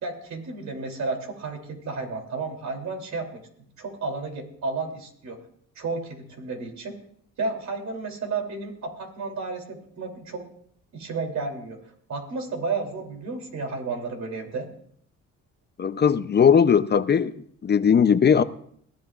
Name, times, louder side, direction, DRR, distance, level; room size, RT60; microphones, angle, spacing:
voice 1, 0.0-3.4 3.8-5.4 5.7-7.0 7.4-10.5 10.9-14.7, right 3 dB, 65° right, 3 dB, 3.1 m, -32 dB
voice 2, 15.8-17.3 17.6-18.4, left 7 dB, 35° left, 13 dB, 0.6 m, -18 dB
21.0 x 14.5 x 2.4 m, 0.65 s
cardioid pair, 90°, 30 cm